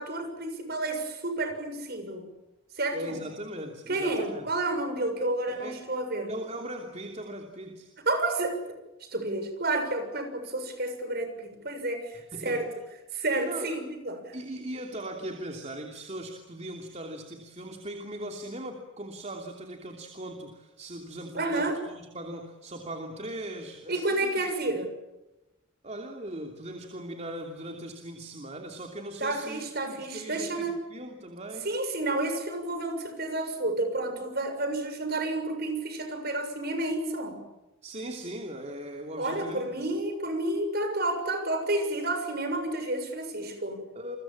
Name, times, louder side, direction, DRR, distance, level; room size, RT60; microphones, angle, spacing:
voice 1, 0.0-2.3 2.7-3.2 3.9-6.3 8.1-8.8 9.1-12.6 13.1-14.4 21.3-21.8 23.9-24.9 29.2-30.8 31.6-37.4 39.2-43.8, right 2 dB, 50° right, 7 dB, 7.0 m, -30 dB
voice 2, 2.9-4.5 5.5-5.9 6.3-7.9 12.1-12.7 13.4-13.8 14.3-24.5 25.8-31.7 37.8-39.9 43.9-44.2, right 1 dB, 35° right, 3 dB, 2.9 m, -39 dB
29.5 x 24.0 x 7.4 m, 0.99 s
head